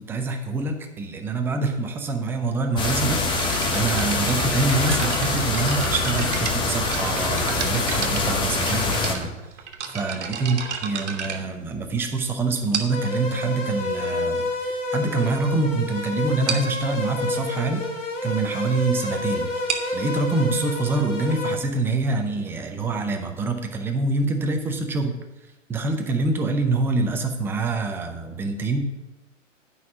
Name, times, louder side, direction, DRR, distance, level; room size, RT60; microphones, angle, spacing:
voice 1, 0.1-3.2 3.7-9.3 9.9-25.1 25.7-28.8, right 3 dB, 5° right, 4 dB, 0.5 m, -25 dB
sound 1, 2.8-9.2, left 3 dB, 15° left, 0.9 m, -24 dB
sound 2, 3.3-12.1 12.7-13.2 14.0-14.1 14.7-14.8 15.1-15.3 15.6-15.7 16.0-16.1 16.5-16.8 19.4-22.9, right 6 dB, 65° right, 1.5 m, -33 dB
sound 3, 12.9-21.6, left 2 dB, 80° left, 2.4 m, -29 dB
9.6 x 5.5 x 6.1 m, 1.1 s
hypercardioid pair, 120°, 38 cm